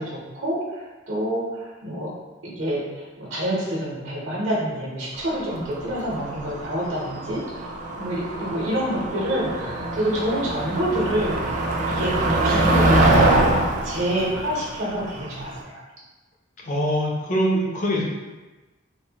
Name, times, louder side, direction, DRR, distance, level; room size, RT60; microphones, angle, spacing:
voice 1, 0.0-2.1 2.4-7.4 8.0-15.8, equal, 75° right, -4 dB, 0.7 m, -27 dB
Motor vehicle (road), 5.2-15.6, right 2 dB, 40° right, 0.3 m, -24 dB
voice 2, 16.6-18.0, equal, 40° left, -2 dB, 0.5 m, -23 dB
3.1 x 2.0 x 2.7 m, 1.2 s
head